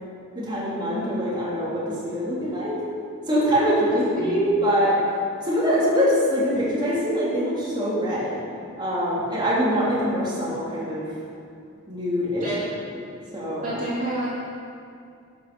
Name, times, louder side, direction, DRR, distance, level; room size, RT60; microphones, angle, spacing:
voice 1, 0.3-2.8 3.3-5.0 5.4-8.4 8.8-11.0 11.9-12.5 13.3-13.7, equal, 20° right, -8 dB, 3.1 m, -23 dB
voice 2, 12.4-12.7 13.6-14.3, right 1 dB, 40° right, -8 dB, 2.8 m, -29 dB
11.5 x 7.6 x 6.9 m, 2.4 s
head